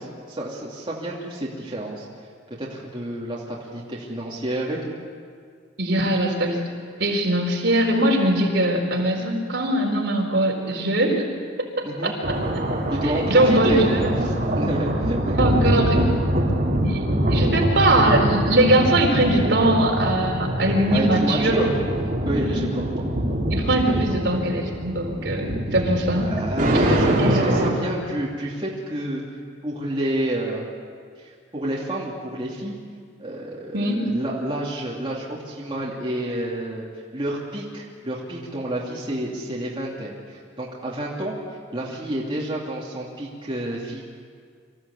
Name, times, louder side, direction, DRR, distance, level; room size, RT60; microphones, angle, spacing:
voice 1, 0.0-2.0 2.6-4.9 11.8-12.1 12.9-16.1 20.9-21.7 22.3-23.1 23.7-24.0 26.2-29.2 29.6-30.6 31.2-32.7 33.2-36.8 37.1-41.4 41.7-44.0, right 1 dB, 25° right, -5 dB, 2.7 m, -29 dB
voice 2, 5.8-6.6 7.0-11.2 11.6-12.3 13.0-14.2 15.3-16.2 16.9-17.0 17.3-21.5 22.4-22.6 23.5-26.3 27.2-27.4 33.7-34.1, right 1 dB, 65° right, 0 dB, 4.3 m, -21 dB
sound 1, 12.2-27.7, right 1 dB, 45° right, 3.6 m, -24 dB
25.5 x 15.0 x 8.4 m, 2.1 s
head